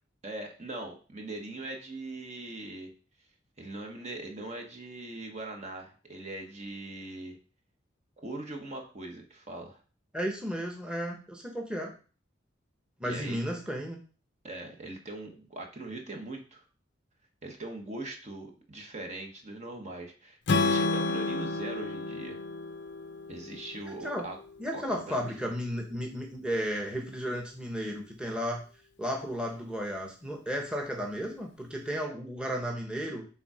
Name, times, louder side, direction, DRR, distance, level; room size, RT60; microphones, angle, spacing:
voice 1, 0.2-2.9 3.6-7.4 8.2-9.8 13.0-13.4 14.4-16.6 17.4-22.4 23.3-24.4 24.7-25.2, right 2 dB, 40° right, 2 dB, 1.2 m, -41 dB
voice 2, 10.1-11.9 13.0-14.0 24.0-24.3 24.6-28.6 29.0-33.3, equal, 5° right, 1 dB, 1.1 m, -33 dB
Strum, 20.5-24.7, left 3 dB, 65° left, 0.6 m, -31 dB
7.0 x 3.7 x 4.9 m, 0.37 s
head